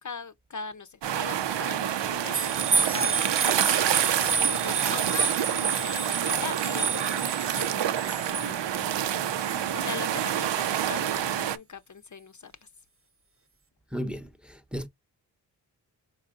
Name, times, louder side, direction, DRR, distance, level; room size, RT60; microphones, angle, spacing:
voice 1, 0.0-4.1 4.3-9.1 9.4-12.7, left 5 dB, 45° left, 0.7 m, -41 dB
sound 1, 1.0-11.6, right 10 dB, 90° right, 0.7 m, -28 dB
sound 2, 2.3-9.6 10.2-10.3, right 5 dB, 30° right, 0.8 m, -29 dB
voice 2, 13.9-14.9, equal, ahead, 0.8 m, -34 dB
4.8 x 4.1 x 2.4 m
cardioid pair, 65°, 42 cm